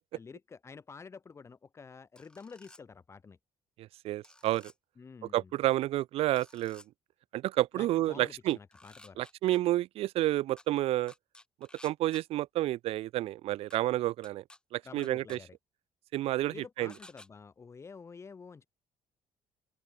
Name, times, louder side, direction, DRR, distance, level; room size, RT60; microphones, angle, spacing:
voice 1, 0.1-3.4 5.0-5.5 7.7-9.2 14.8-15.6 16.5-18.6, left 5 dB, 25° left, 4.8 m, -49 dB
sound 1, 2.2-2.8 4.2-4.7 6.4-6.9 8.5-9.6 10.6-10.7 11.1-12.2 13.7-13.8 14.2-14.6 15.0-15.4 16.9-17.3, left 2 dB, 10° left, 4.0 m, -55 dB
voice 2, 3.8-4.7 5.3-6.8 7.3-8.6 9.2-11.1 11.8-14.4 14.7-15.4 16.1-16.9, right 15 dB, 65° right, 0.5 m, -30 dB
open air
cardioid pair, 150°, 11 cm